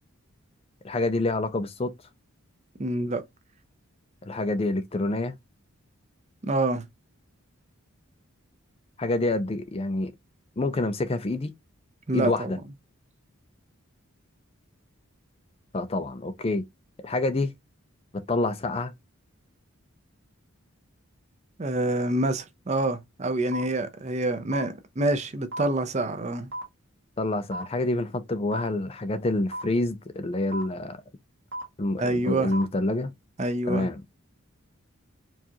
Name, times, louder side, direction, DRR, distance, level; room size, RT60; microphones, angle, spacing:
voice 1, 0.8-1.9 4.3-5.4 9.0-10.1 10.6-11.5 12.1-12.6 15.7-16.7 17.0-17.5 18.1-18.9 27.2-31.0 31.8-33.1 33.7-34.0, left 2 dB, 25° left, 0.4 m, -27 dB
voice 2, 2.8-3.2 6.4-6.8 12.1-12.5 21.6-26.5 32.0-32.5 33.4-33.9, right 2 dB, 30° right, 0.6 m, -27 dB
sound 1, 23.5-23.6 24.5-24.6 25.5-25.6 26.5-26.6 27.5-27.6 28.5-28.6 29.5-29.6 30.5-30.6 31.5-31.6 32.5-32.6, right 1 dB, 50° right, 1.3 m, -33 dB
4.7 x 2.4 x 2.8 m
head